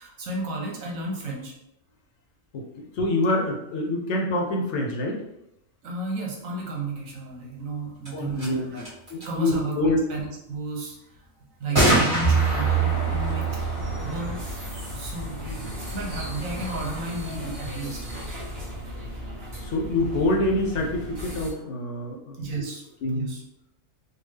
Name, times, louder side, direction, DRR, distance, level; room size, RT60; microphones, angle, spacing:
voice 1, 0.0-1.5 5.8-8.9 9.2-10.9 11.6-13.5 14.0-14.4 14.9-15.6 15.9-18.0 22.4-23.4, right 2 dB, 85° right, -1 dB, 1.3 m, -33 dB
voice 2, 3.0-5.2 8.1-8.6 9.1-10.0 11.7-12.0 13.9-14.0 19.6-22.7 23.0-23.3, left 1 dB, 65° left, 1 dB, 0.9 m, -26 dB
sound 1, 8.0-8.1 8.4-8.5 8.7-9.3 11.7-15.1, equal, 25° right, 1.4 m, -26 dB
sound 2, 12.2-21.5, right 5 dB, 50° right, 1.1 m, -30 dB
3.5 x 2.4 x 3.2 m, 0.83 s
omnidirectional pair, 1.4 m